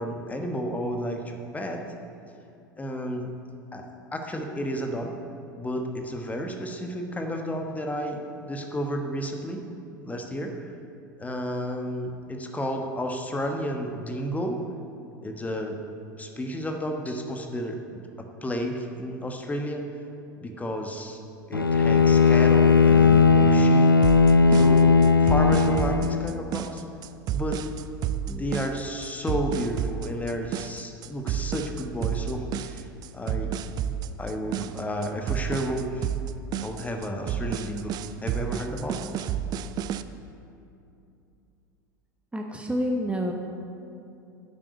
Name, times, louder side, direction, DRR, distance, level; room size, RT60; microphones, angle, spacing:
voice 1, 0.0-1.8 2.8-3.3 3.7-3.9 4.1-5.1 5.5-9.6 10.0-10.5 11.2-14.6 15.2-15.8 16.2-19.8 20.4-21.2 21.5-24.0 24.5-26.8 27.3-27.6 28.3-32.9 33.1-33.6 34.2-36.1 36.6-37.9 38.2-39.3, equal, 15° left, 3 dB, 1.2 m, -32 dB
Bowed string instrument, 21.5-26.4, left 4 dB, 90° left, 0.4 m, -18 dB
sound 1, 24.0-40.0, right 9 dB, 35° right, 0.5 m, -31 dB
voice 2, 42.3-43.3, equal, 10° right, 2 dB, 1.0 m, -28 dB
9.9 x 7.6 x 7.9 m, 2.7 s
figure-of-eight pair, 80°, 11 cm